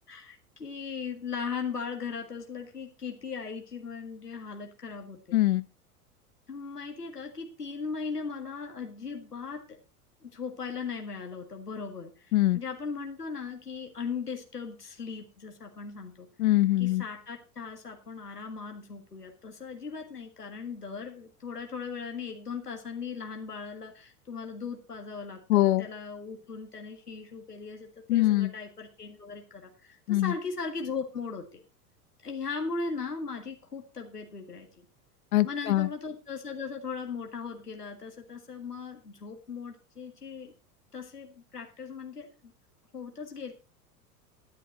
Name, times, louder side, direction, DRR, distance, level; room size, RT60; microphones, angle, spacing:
voice 1, 0.0-5.4 6.5-9.6 10.2-16.3 16.8-31.6 32.2-34.9 35.4-40.5 40.9-42.5 42.9-43.5, left 5 dB, 90° left, 3 dB, 1.9 m, -38 dB
voice 2, 5.3-5.7 12.3-12.6 16.4-17.1 25.5-25.9 28.1-28.5 30.1-30.3 35.3-35.9, left 16 dB, 65° left, 17 dB, 0.6 m, -23 dB
11.5 x 10.5 x 4.2 m, 0.31 s
figure-of-eight pair, 85°, 45 cm